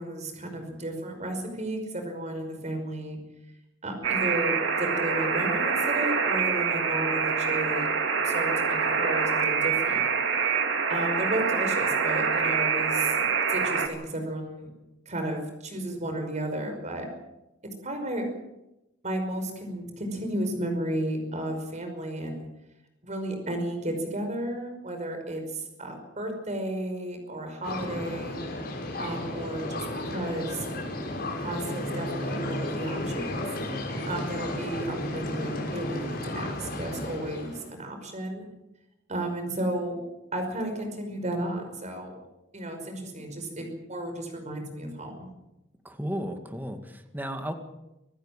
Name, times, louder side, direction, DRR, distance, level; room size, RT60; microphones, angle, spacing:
voice 1, 0.0-3.2 3.8-7.9 8.2-10.0 10.9-14.7 15.1-17.1 17.6-18.3 19.0-22.5 23.0-28.4 29.0-30.7 31.4-33.4 34.1-38.5 39.1-40.0 40.3-42.2 42.5-45.3, right 1 dB, 40° right, 5 dB, 5.4 m, -33 dB
Alarm, 4.0-13.9, right 5 dB, 85° right, 2.6 m, -26 dB
sound 1, 27.6-37.7, left 1 dB, 55° left, 5.7 m, -33 dB
voice 2, 45.8-47.5, equal, 10° right, 6 dB, 2.1 m, -34 dB
26.0 x 15.0 x 7.5 m, 0.92 s
head